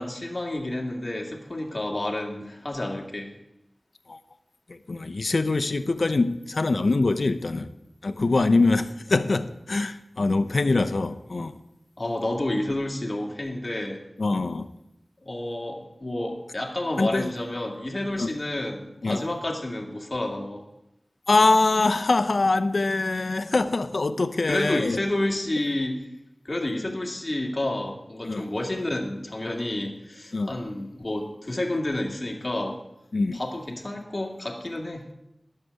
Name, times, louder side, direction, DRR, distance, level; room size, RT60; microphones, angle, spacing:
voice 1, 0.0-3.3 12.0-14.0 15.2-20.6 24.5-26.0 26.4-32.8 33.3-35.1, left 1 dB, 35° left, 2.3 m, -30 dB
voice 2, 4.7-7.7 8.0-11.6 14.2-14.7 17.0-17.3 18.2-18.3 19.0-19.2 21.3-25.0 28.2-28.4 30.3-30.5 33.1-33.4, left 3 dB, 80° left, 0.7 m, -23 dB
11.5 x 6.7 x 9.4 m
wide cardioid pair, 60°, 0 cm